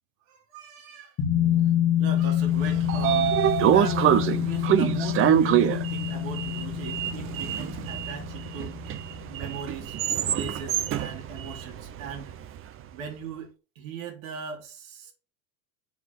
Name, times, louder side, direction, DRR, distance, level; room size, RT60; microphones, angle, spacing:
voice 1, 0.3-1.1 1.4-3.4 3.7-8.8 9.3-10.0 10.3-12.3 12.9-15.1, right 5 dB, 80° right, 4.4 m, -39 dB
sound 1, 1.2-10.3 10.6-10.7, left 11 dB, 35° left, 1.8 m, -27 dB
Sliding door, 2.4-12.6, right 10 dB, 35° right, 0.7 m, -26 dB
7.2 x 6.1 x 6.1 m
supercardioid pair, 130°, 40 cm